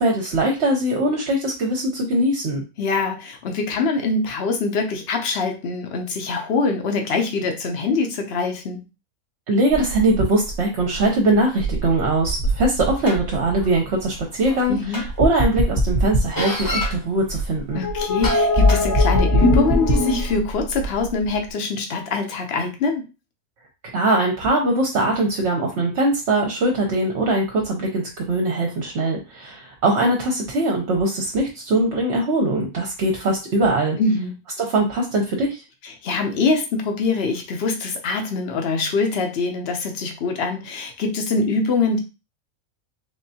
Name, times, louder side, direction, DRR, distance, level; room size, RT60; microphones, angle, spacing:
voice 1, 0.0-2.6 9.5-14.8 15.2-17.8 23.9-34.0 34.6-35.6, right 2 dB, 55° right, 0 dB, 0.9 m, -21 dB
voice 2, 2.8-8.8 14.7-15.0 17.7-23.0 34.0-34.3 35.8-42.0, left 3 dB, 55° left, 4 dB, 0.9 m, -24 dB
sound 1, 9.7-21.5, right 4 dB, 80° left, 1.6 m, -32 dB
sound 2, 12.4-12.5 13.1-13.2 14.5-14.6 14.9-16.9 17.7-20.4, left 1 dB, 20° left, 0.8 m, -19 dB
3.6 x 3.2 x 2.7 m, 0.29 s
omnidirectional pair, 1.5 m